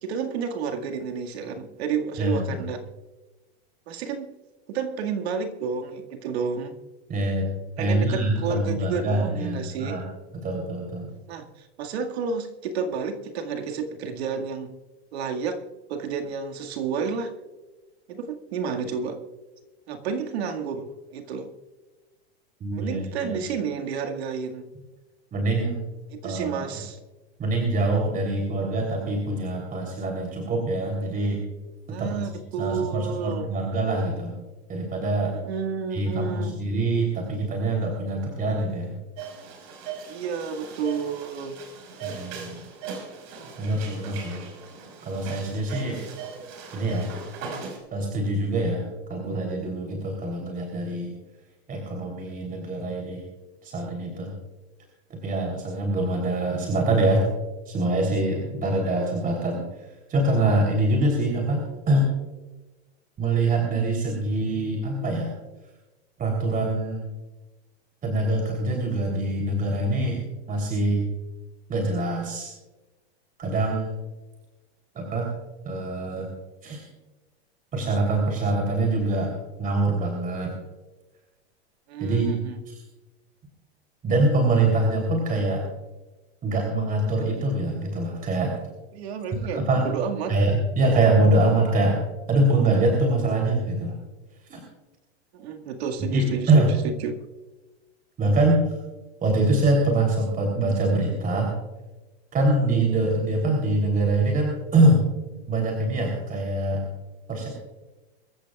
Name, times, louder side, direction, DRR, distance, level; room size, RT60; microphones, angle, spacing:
voice 1, 0.0-2.8 3.9-4.3 4.7-6.8 7.8-10.0 11.3-14.7 15.1-15.6 15.9-17.3 18.1-19.2 19.9-21.5 22.7-24.7 26.1-27.0 31.9-33.5 35.3-36.6 40.1-41.5 81.9-82.6 88.9-90.3 95.3-97.2, right 6 dB, 75° right, 3 dB, 2.0 m, -31 dB
voice 2, 2.2-2.6 7.1-7.5 7.8-10.0 10.3-11.1 22.6-23.4 25.3-25.8 26.2-26.6 27.4-31.4 32.0-32.2 32.6-34.3 34.7-35.4 35.9-38.9 42.0-42.6 43.6-44.4 45.0-46.0 46.7-47.1 47.9-51.1 51.7-53.2 53.6-54.3 55.1-57.3 57.6-59.6 60.1-62.1 63.2-65.3 66.2-67.0 68.0-71.0 71.7-72.5 73.4-73.9 74.9-75.3 75.6-76.3 76.6-76.8 77.7-79.3 79.6-80.5 82.0-82.4 82.7-82.8 84.0-85.6 86.4-88.6 89.5-89.9 90.3-92.0 92.3-94.0 94.5-94.6 96.0-96.7 98.2-98.6 99.2-101.5 102.3-105.0 105.5-106.9 107.3-107.5, right 2 dB, 25° right, 1 dB, 3.4 m, -24 dB
sound 1, 39.2-47.8, right 5 dB, 55° right, 5.2 m, -39 dB
23.5 x 13.5 x 2.4 m, 1.2 s
hypercardioid pair, 120°, 32 cm